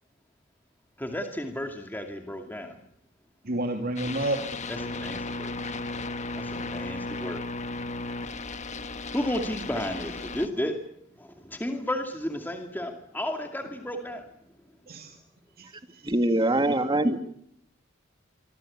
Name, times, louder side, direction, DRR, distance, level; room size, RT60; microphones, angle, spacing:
voice 1, 1.0-2.8 4.8-5.5 6.4-7.4 9.1-10.7 11.2-14.2, left 1 dB, 10° left, 4 dB, 2.4 m, -33 dB
voice 2, 3.4-4.4 14.9-15.2 15.6-16.1 16.5-16.8, right 1 dB, 50° right, 4 dB, 2.7 m, -31 dB
sound 1, 4.0-10.5, left 3 dB, 35° left, 1.4 m, -35 dB
voice 3, 16.0-17.2, right 1 dB, 25° right, 8 dB, 2.0 m, -23 dB
26.0 x 25.0 x 8.6 m, 0.72 s
head